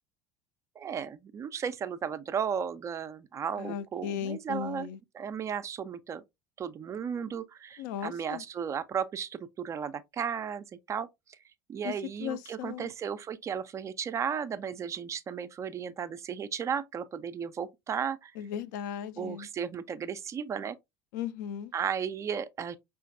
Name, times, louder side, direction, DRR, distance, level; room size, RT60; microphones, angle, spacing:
voice 1, 0.8-4.9 5.1-6.2 6.6-11.1 11.7-18.3 19.2-20.8 21.7-22.8, right 7 dB, 25° right, 0.3 m, -34 dB
voice 2, 3.6-5.0 7.8-8.4 11.8-11.9 12.2-12.9 18.4-19.5 21.1-21.7, left 9 dB, 55° left, 0.4 m, -36 dB
5.6 x 2.4 x 2.4 m
figure-of-eight pair, 70°, 12 cm